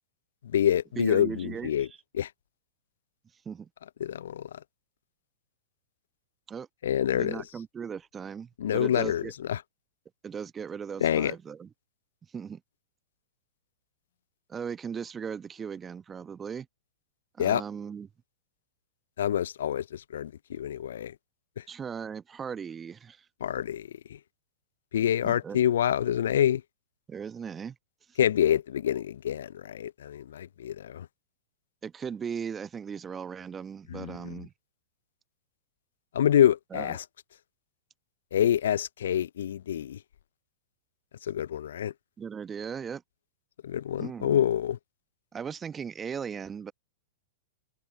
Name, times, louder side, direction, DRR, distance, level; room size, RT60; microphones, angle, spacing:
voice 1, 0.4-1.9 2.1-2.3 4.0-4.6 6.8-7.4 8.6-9.6 11.0-11.3 17.4-17.6 19.2-21.1 21.6-21.7 23.4-24.2 24.9-26.6 28.2-31.1 33.9-34.4 36.1-37.0 38.3-40.0 41.2-41.9 43.6-44.8, left 10 dB, 65° left, 0.4 m, -27 dB
voice 2, 1.0-2.0 3.4-3.7 6.5-6.7 7.1-9.3 10.2-11.7 12.3-12.6 14.5-16.7 17.4-18.1 21.7-23.2 25.2-25.6 27.1-27.8 31.8-34.5 36.7-37.0 42.2-43.0 44.0-44.4 45.3-46.7, right 7 dB, 20° right, 1.1 m, -37 dB
figure-of-eight pair, 105°, 0 cm